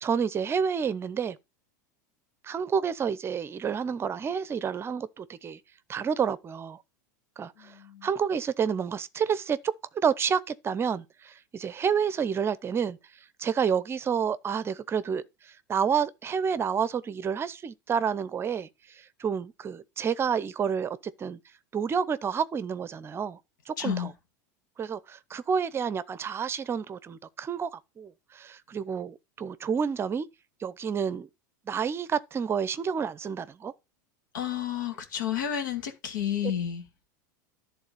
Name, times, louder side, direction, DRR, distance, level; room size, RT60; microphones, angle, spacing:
voice 1, 0.0-1.4 2.4-5.6 5.9-6.8 7.4-7.7 8.0-9.6 10.0-13.0 13.4-21.4 21.7-23.4 23.7-24.1 24.8-30.3 30.6-31.3 31.7-33.7, right 7 dB, 25° right, 0.6 m, -29 dB
voice 2, 7.6-8.1 23.8-24.1 34.3-36.8, left 9 dB, 85° left, 2.1 m, -31 dB
11.0 x 3.7 x 6.7 m
hypercardioid pair, 110°, 10 cm